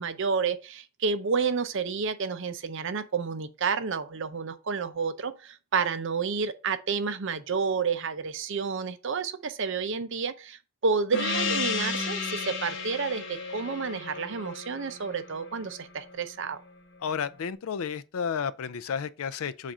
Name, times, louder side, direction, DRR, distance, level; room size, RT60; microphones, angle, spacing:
voice 1, 0.0-16.6, right 5 dB, 60° right, 0.6 m, -30 dB
Gong, 11.1-16.1, left 4 dB, 55° left, 0.8 m, -33 dB
voice 2, 17.0-19.7, left 6 dB, 70° left, 0.4 m, -32 dB
7.3 x 2.5 x 5.4 m
head